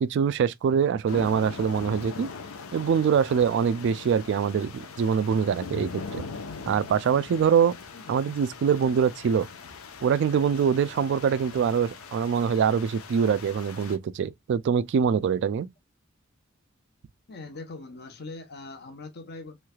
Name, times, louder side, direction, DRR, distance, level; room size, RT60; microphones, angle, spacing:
voice 1, 0.0-2.3 2.7-6.2 6.7-7.7 8.1-9.5 10.0-15.7, right 7 dB, 60° right, 0.3 m, -24 dB
sound 1, 1.1-14.0, left 4 dB, 80° left, 0.7 m, -41 dB
voice 2, 7.9-8.5 14.2-14.3 17.3-19.6, left 3 dB, 50° left, 0.8 m, -42 dB
3.2 x 3.2 x 2.2 m
head